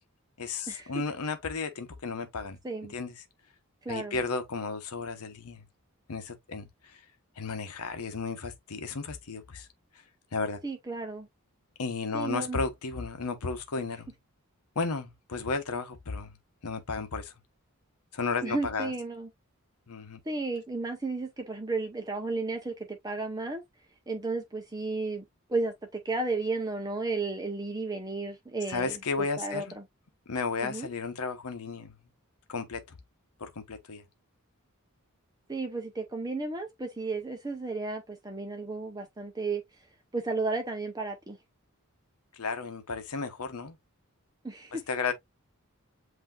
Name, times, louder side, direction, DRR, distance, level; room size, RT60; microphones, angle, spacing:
voice 1, 0.4-2.6 2.9-3.1 3.9-5.6 6.1-7.0 7.4-9.7 10.3-10.6 11.8-14.1 14.8-16.4 16.6-17.3 18.1-18.9 19.9-20.2 28.7-29.6 30.3-31.9 32.5-32.8 33.4-34.0 42.3-43.8 44.7-45.1, left 4 dB, 85° left, 0.8 m, -33 dB
voice 2, 3.8-4.2 10.6-11.3 12.1-12.6 18.4-19.3 20.3-23.6 24.1-29.8 30.6-30.9 35.5-39.6 40.1-41.4 44.4-44.8, right 3 dB, 15° right, 0.7 m, -33 dB
7.9 x 2.7 x 2.4 m
head